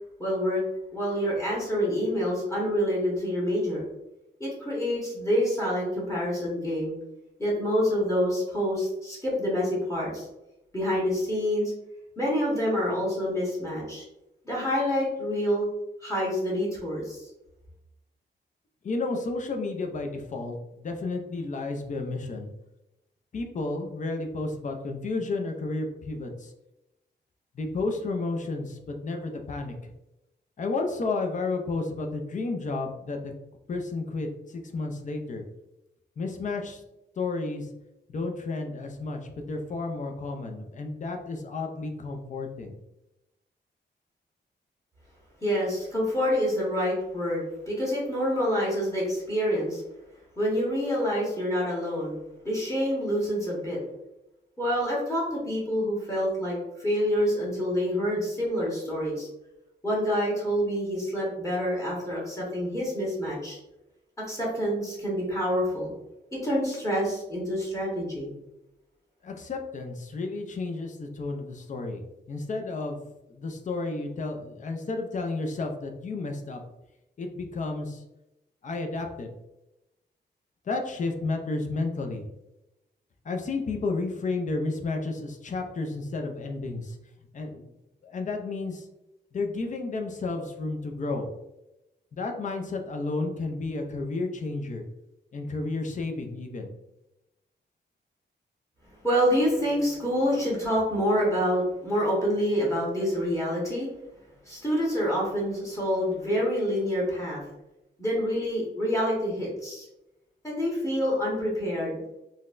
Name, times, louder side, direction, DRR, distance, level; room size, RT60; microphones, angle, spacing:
voice 1, 0.2-0.6 0.9-3.8 4.4-7.0 7.4-10.2 10.7-11.7 12.2-14.0 14.4-15.7 16.0-17.2 45.4-49.8 50.4-52.2 52.4-53.8 54.6-59.3 59.8-63.6 64.3-65.9 66.3-68.3 99.0-103.9 104.4-107.4 108.0-109.9 110.4-112.0, equal, 15° left, -6 dB, 1.1 m, -27 dB
voice 2, 18.8-22.5 23.3-26.5 27.5-29.9 30.6-33.3 33.7-35.4 36.2-36.8 37.2-37.7 38.1-39.2 39.5-42.8 69.2-72.0 72.3-73.0 73.3-76.6 77.2-78.0 78.6-79.3 80.7-82.3 83.2-87.0 87.3-87.7 88.0-88.9 89.3-91.3 92.1-94.8 95.3-96.7, left 3 dB, 45° left, 3 dB, 0.5 m, -32 dB
3.9 x 2.1 x 2.4 m, 0.92 s
wide cardioid pair, 125°, 18 cm